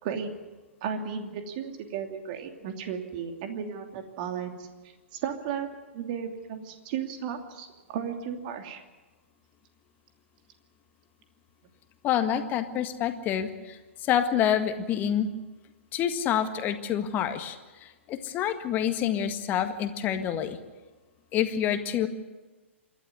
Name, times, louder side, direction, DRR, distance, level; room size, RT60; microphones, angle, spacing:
voice 1, 0.8-4.7 5.1-5.7 5.9-8.8, right 7 dB, 40° right, 5 dB, 2.8 m, -34 dB
voice 2, 12.0-15.3 15.9-20.6 21.3-22.1, left 9 dB, 25° left, 8 dB, 1.7 m, -27 dB
27.0 x 12.5 x 9.7 m, 1.2 s
figure-of-eight pair, 115°, 7 cm